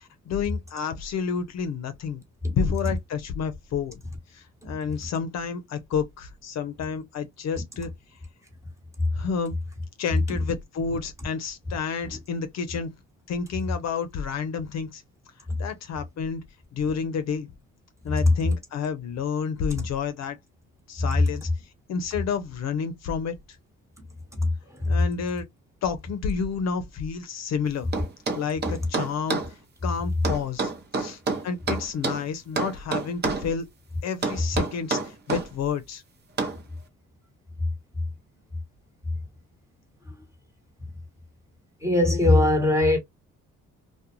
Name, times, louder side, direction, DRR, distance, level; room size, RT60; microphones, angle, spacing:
voice 1, 0.0-2.2 2.5-4.0 4.3-7.9 9.1-9.6 10.0-12.9 13.3-15.0 15.6-16.4 16.7-17.5 18.0-20.4 20.9-21.5 21.9-23.3 24.9-25.5 25.8-27.9 28.4-29.4 29.8-33.6 34.0-36.0, left 6 dB, 60° left, 0.6 m, -30 dB
voice 2, 24.3-25.0 40.1-40.2 41.8-43.0, left 2 dB, 10° right, 1.1 m, -21 dB
sound 1, 27.9-29.5 30.2-32.2 32.6-33.5 34.2-35.5 36.4-36.6, right 4 dB, 35° right, 0.8 m, -28 dB
2.3 x 2.1 x 2.8 m
cardioid pair, 90°, 30 cm